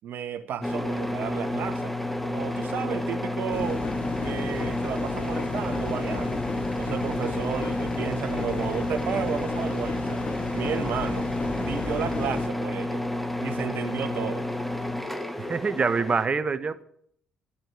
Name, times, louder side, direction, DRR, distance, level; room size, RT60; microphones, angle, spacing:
voice 1, 0.0-2.0 2.2-3.8 4.2-6.4 6.8-10.2 10.5-11.3 11.6-13.1 13.4-14.5, right 8 dB, 55° right, 1.6 m, -33 dB
sound 1, 0.6-16.3, left 1 dB, 5° left, 1.5 m, -30 dB
sound 2, 3.5-12.5, left 5 dB, 45° left, 2.1 m, -35 dB
voice 2, 15.4-16.8, right 4 dB, 35° right, 1.5 m, -25 dB
13.0 x 12.5 x 8.3 m
figure-of-eight pair, 50°, 4 cm